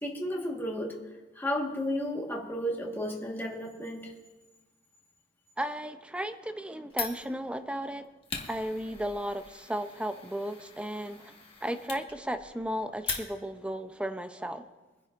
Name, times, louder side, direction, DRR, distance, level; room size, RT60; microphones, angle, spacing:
voice 1, 0.0-1.0 1.3-4.1, equal, 10° left, 1.5 m, -33 dB
voice 2, 5.6-8.1 8.5-11.3 11.6-14.7, equal, 5° right, 0.6 m, -35 dB
Fire, 6.9-13.7, left 5 dB, 30° left, 1.6 m, -41 dB
24.0 x 10.5 x 2.5 m
head